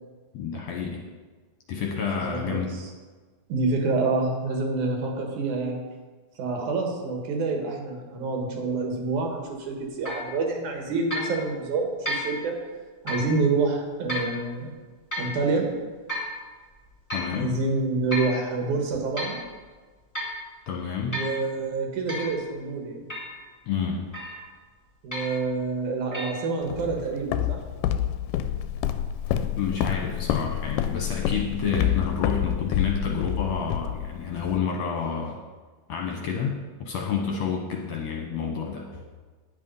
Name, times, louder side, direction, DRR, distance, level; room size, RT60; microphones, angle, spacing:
voice 1, 0.3-1.0 1.7-2.7 17.1-17.5 20.7-21.1 23.7-24.0 29.6-35.4 35.9-39.1, left 6 dB, 65° left, 0 dB, 1.9 m, -29 dB
voice 2, 2.1-2.9 3.5-5.8 6.4-12.6 13.0-14.7 15.2-15.7 17.3-19.4 21.0-23.1 25.0-27.6, right 3 dB, 65° right, 1 dB, 2.7 m, -27 dB
sound 1, 10.1-10.3 11.1-11.4 12.1-12.3 13.1-13.3 14.1-14.3 15.1-15.4 16.1-16.4 17.1-17.4 18.1-18.4 18.9-19.4 20.1-20.4 21.1-21.4 22.1-22.3 23.1-23.4 24.1-24.5 25.1-25.4 26.1-26.3, left 1 dB, 10° left, 2.4 m, -32 dB
Walk footsteps, 26.7-34.6, left 10 dB, 80° left, 2.0 m, -28 dB
10.5 x 8.6 x 5.5 m, 1.4 s
omnidirectional pair, 4.0 m